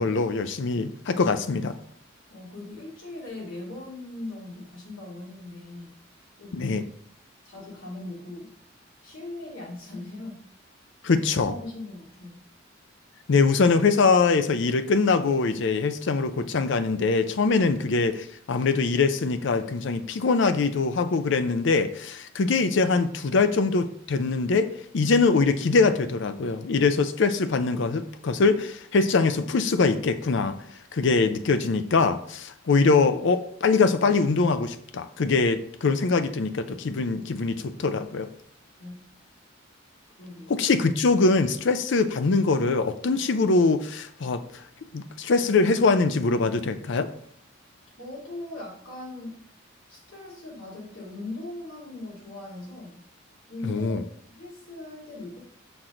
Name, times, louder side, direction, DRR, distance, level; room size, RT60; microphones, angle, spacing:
voice 1, 0.0-1.8 6.5-6.8 11.0-11.5 13.3-24.7 24.9-30.6 30.9-38.3 40.5-44.4 44.9-47.1 53.6-54.0, left 4 dB, 60° left, 0.5 m, -23 dB
voice 2, 2.3-5.9 6.4-6.7 7.4-8.5 9.0-10.4 11.1-12.4 38.8-39.0 40.2-40.6 48.0-49.3 49.9-53.0 53.5-54.0 54.3-55.4, left 2 dB, 75° left, 2.9 m, -39 dB
6.1 x 6.0 x 3.8 m
head